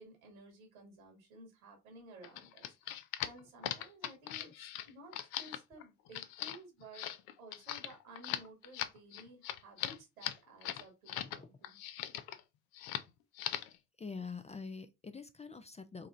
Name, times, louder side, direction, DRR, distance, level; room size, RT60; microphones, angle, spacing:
voice 1, 0.0-7.1 7.4-11.8, right 2 dB, 85° right, 1.8 m, -55 dB
sound 1, 2.2-11.4 11.6-12.4 12.7-13.1 13.4-13.8, left 12 dB, 60° left, 0.6 m, -40 dB
voice 2, 13.5-16.1, left 5 dB, 15° left, 0.4 m, -46 dB
4.9 x 3.0 x 2.6 m
hypercardioid pair, 50°, 41 cm